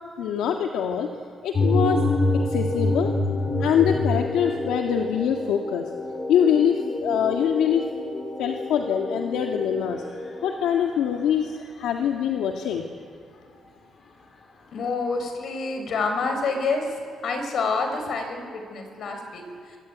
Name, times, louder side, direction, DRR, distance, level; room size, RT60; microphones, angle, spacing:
voice 1, 0.2-1.1 1.4-2.0 2.5-3.1 3.6-5.9 6.3-7.8 8.4-10.0 10.4-12.9, left 8 dB, 85° left, 2 dB, 1.9 m, -24 dB
sound 1, 1.5-10.9, left 2 dB, 45° left, 5.9 m, -27 dB
voice 2, 14.7-16.9 17.2-19.4, left 4 dB, 65° left, 5 dB, 6.0 m, -27 dB
24.5 x 24.0 x 9.3 m, 2.2 s
cardioid pair, 90°, 0 cm